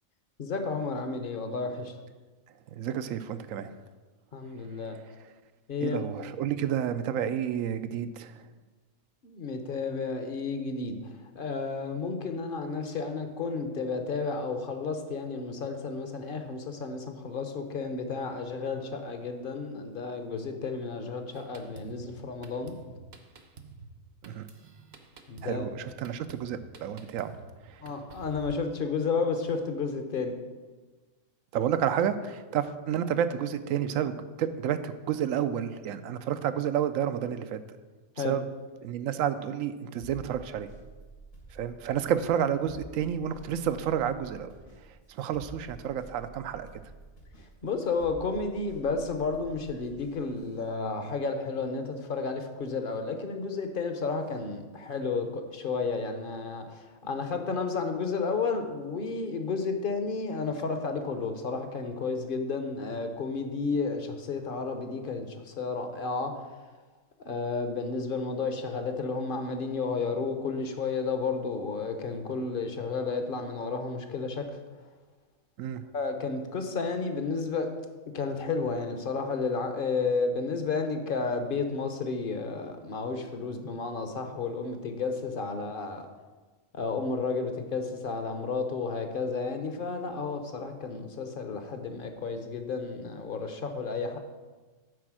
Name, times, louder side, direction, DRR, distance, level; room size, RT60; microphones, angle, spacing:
voice 1, 0.4-1.9 4.3-5.0 5.7-6.0 9.2-22.8 25.3-25.6 27.8-30.4 38.2-38.4 47.6-66.6 67.2-74.6 75.9-77.7 78.1-86.1 86.7-94.2, left 4 dB, 45° left, 6 dB, 0.9 m, -32 dB
voice 2, 2.7-3.8 5.8-8.4 24.3-24.5 25.4-27.3 27.6-27.8 31.5-37.6 38.2-38.4 38.8-40.7 41.5-44.5 45.1-46.7 75.6-75.8, right 9 dB, 80° right, 12 dB, 1.0 m, -30 dB
Drum kit, 21.3-28.6, right 4 dB, 55° right, 0.9 m, -50 dB
sound 1, 40.0-50.7, right 1 dB, 85° left, 3.0 m, -50 dB
9.7 x 4.3 x 6.1 m, 1.3 s
omnidirectional pair, 1.4 m